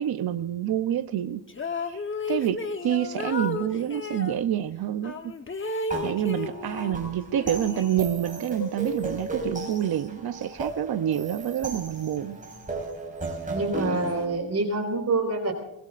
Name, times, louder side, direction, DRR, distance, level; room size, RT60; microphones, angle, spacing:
voice 1, 0.0-5.3 6.0-12.4, right 10 dB, 70° right, 9 dB, 0.7 m, -28 dB
sound 1, 1.5-4.4 5.0-7.0 7.3-8.4, left 3 dB, 30° left, 1.0 m, -33 dB
sound 2, 5.9-14.2, right 2 dB, 20° right, 5.2 m, -35 dB
voice 2, 13.5-15.5, right 3 dB, 40° right, 3 dB, 4.5 m, -26 dB
22.5 x 20.5 x 2.5 m, 0.85 s
wide cardioid pair, 155°, 38 cm